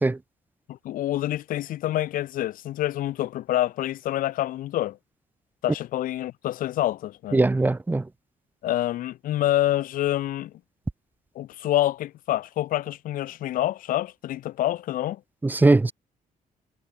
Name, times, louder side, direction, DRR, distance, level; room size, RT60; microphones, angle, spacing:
voice 1, 0.7-5.0 5.6-7.4 8.6-10.5 11.4-15.2, left 14 dB, 80° left, 7.1 m, -27 dB
voice 2, 7.3-8.0 15.4-15.9, right 2 dB, 15° right, 2.0 m, -20 dB
cardioid pair, 150°, 14 cm